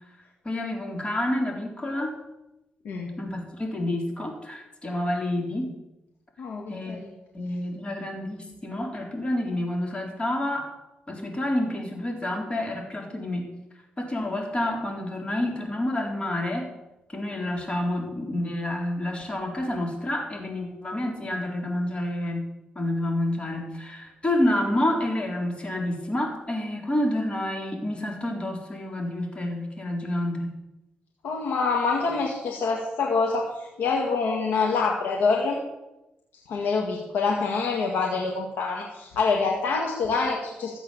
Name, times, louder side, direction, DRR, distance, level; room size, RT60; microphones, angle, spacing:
voice 1, 0.4-2.1 3.2-5.7 6.7-7.0 7.3-10.7 11.1-13.5 14.0-16.7 17.1-22.5 22.8-30.5, left 1 dB, 30° left, 1 dB, 4.0 m, -28 dB
voice 2, 6.4-7.1 31.2-35.6 36.5-40.8, left 4 dB, 85° left, 0 dB, 1.8 m, -26 dB
14.0 x 8.2 x 7.1 m, 0.96 s
cardioid pair, 70°, 4 cm